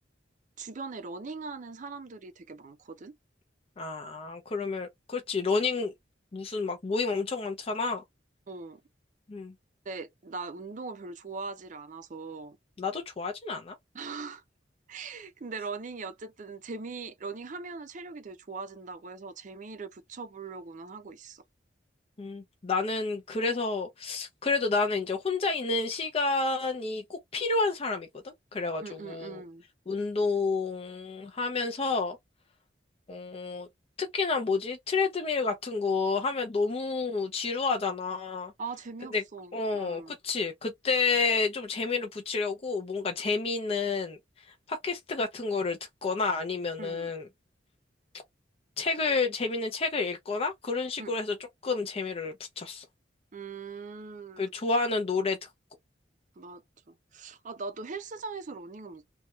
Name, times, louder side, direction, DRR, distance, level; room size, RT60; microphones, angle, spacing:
voice 1, 0.6-3.1 8.5-8.8 9.9-12.6 13.9-14.4 14.9-21.4 28.8-29.6 38.6-40.2 46.8-47.1 51.0-51.1 53.3-54.5 56.4-56.6 56.9-59.1, right 4 dB, 45° right, 0.5 m, -40 dB
voice 2, 3.8-5.9 6.3-8.0 9.3-9.5 12.8-13.8 22.2-29.4 29.9-32.2 33.1-33.7 34.0-38.5 39.1-39.2 39.5-44.2 44.7-47.3 48.8-51.4 51.6-52.8 54.4-55.5, left 4 dB, 35° left, 0.5 m, -30 dB
2.7 x 2.3 x 2.9 m
head